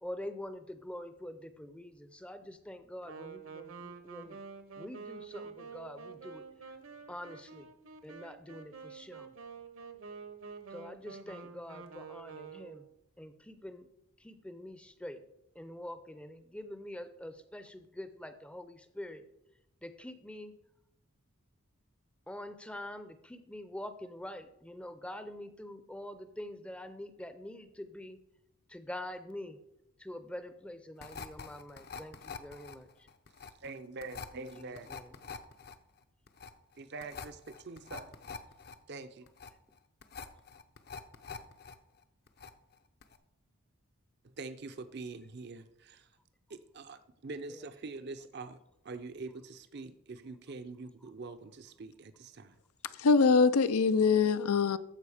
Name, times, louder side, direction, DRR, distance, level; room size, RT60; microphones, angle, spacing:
voice 1, 0.0-4.4 4.8-6.4 7.1-7.7 8.0-9.3 10.7-12.9 13.2-13.9 14.2-15.2 15.6-19.2 19.8-20.5 22.3-28.2 28.7-29.6 30.0-33.1 34.3-35.2 47.5-47.7, left 1 dB, 5° left, 0.6 m, -45 dB
Wind instrument woodwind instrument, 3.0-12.9, right 5 dB, 65° right, 1.1 m, -48 dB
sound 1, 31.0-41.7 42.0-42.7 43.0-43.2, left 5 dB, 45° left, 0.7 m, -46 dB
voice 2, 33.6-34.9 36.8-38.1 38.9-39.2 44.4-46.1 46.5-48.6 48.8-52.5, right 3 dB, 50° right, 0.6 m, -44 dB
voice 3, 53.0-54.8, left 4 dB, 85° left, 0.5 m, -23 dB
14.0 x 5.1 x 4.9 m
head